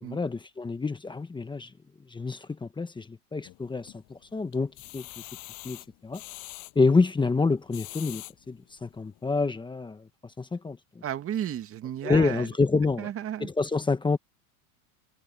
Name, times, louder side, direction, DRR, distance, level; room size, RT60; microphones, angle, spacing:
voice 1, 0.0-1.7 2.1-5.0 5.6-6.2 6.7-10.1 10.4-10.8 12.0-13.1 13.4-14.2, left 4 dB, 10° left, 1.2 m, -27 dB
sound 1, 3.4-4.1 4.5-6.7 7.5-8.3 8.9-9.0 9.4-9.5, left 21 dB, 50° left, 7.2 m, -43 dB
voice 2, 11.0-12.5 13.0-13.5, right 10 dB, 30° right, 2.1 m, -33 dB
supercardioid pair, 135°, 46 cm